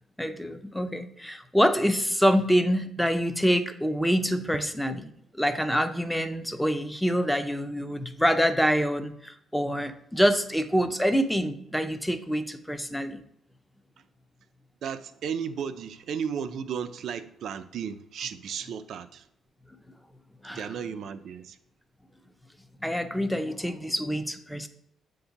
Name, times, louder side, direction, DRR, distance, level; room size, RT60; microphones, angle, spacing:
voice 1, 0.2-13.2 20.4-20.6 22.8-24.7, equal, 5° left, 0.5 m, -26 dB
voice 2, 14.8-19.3 20.4-21.6, right 7 dB, 70° right, 0.4 m, -34 dB
7.5 x 2.7 x 5.7 m
cardioid pair, 90°, 0 cm